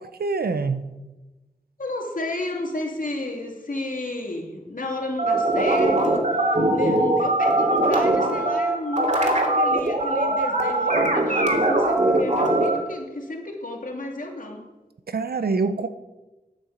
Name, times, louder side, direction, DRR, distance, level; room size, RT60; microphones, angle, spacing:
voice 1, 0.2-0.9 15.1-15.9, right 4 dB, 90° right, 11 dB, 0.8 m, -24 dB
voice 2, 1.8-14.6, left 2 dB, 60° left, 1 dB, 2.6 m, -32 dB
sound 1, 5.2-12.8, right 2 dB, 50° right, 2.7 m, -21 dB
9.7 x 8.9 x 7.4 m, 1.1 s
cardioid pair, 45°, 16 cm